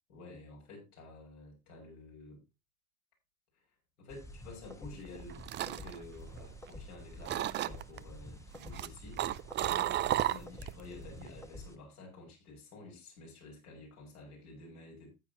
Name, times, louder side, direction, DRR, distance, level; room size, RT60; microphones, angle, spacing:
voice 1, 0.1-2.4 4.0-15.1, left 2 dB, 75° left, 6.7 m, -51 dB
sound 1, 4.1-11.8, left 2 dB, 5° left, 1.2 m, -49 dB
sound 2, 5.0-6.9 7.2-8.0 8.5-10.8 11.1-11.5, right 13 dB, 25° right, 0.5 m, -33 dB
14.5 x 8.6 x 2.9 m
hypercardioid pair, 80°, 45 cm